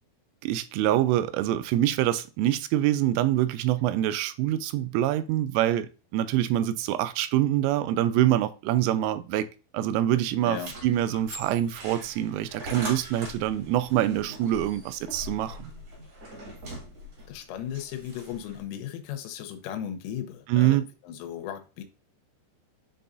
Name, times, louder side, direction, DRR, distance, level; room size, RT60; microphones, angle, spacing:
voice 1, 0.4-9.5 9.7-15.7 20.5-20.9, right 13 dB, 85° right, 3.1 m, -25 dB
sound 1, 10.5-18.6, equal, 50° right, 2.0 m, -42 dB
voice 2, 17.3-21.8, left 9 dB, 85° left, 3.4 m, -36 dB
10.5 x 3.9 x 2.5 m
omnidirectional pair, 5.7 m